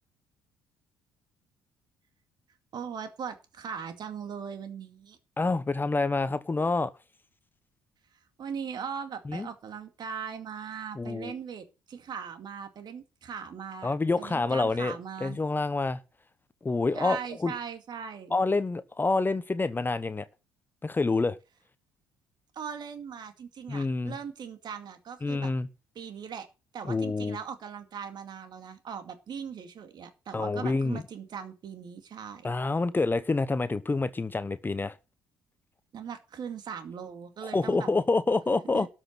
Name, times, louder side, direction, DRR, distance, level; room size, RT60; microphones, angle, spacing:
voice 1, 2.7-5.2 8.4-15.4 16.9-18.3 22.5-25.5 25.9-26.5 26.7-32.5 35.9-37.9 38.7-38.9, right 7 dB, 50° right, 2.3 m, -39 dB
voice 2, 5.4-6.9 9.3-9.5 11.0-11.3 13.8-16.0 16.6-17.5 18.3-20.3 20.8-21.4 23.7-24.1 25.2-25.7 26.8-27.4 30.3-31.0 32.4-35.0 37.4-38.9, left 3 dB, 20° left, 1.0 m, -27 dB
13.0 x 6.4 x 7.5 m
hypercardioid pair, 50°, 9 cm